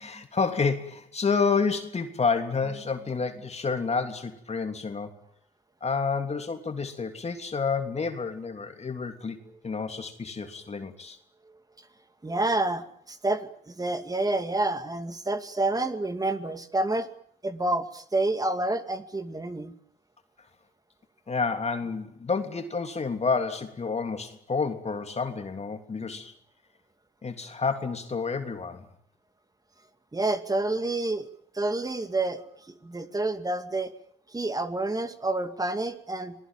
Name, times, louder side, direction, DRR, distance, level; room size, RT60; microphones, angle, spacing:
voice 1, 0.0-5.2 5.8-9.4 9.6-11.2 21.3-26.3 27.2-28.9, left 5 dB, 35° left, 6 dB, 3.2 m, -29 dB
voice 2, 12.2-17.1 17.4-19.7 30.1-31.3 31.5-32.4 32.8-33.9 34.3-36.4, right 2 dB, 20° right, 9 dB, 2.4 m, -28 dB
26.0 x 20.0 x 9.1 m, 0.62 s
cardioid pair, 90°, 20 cm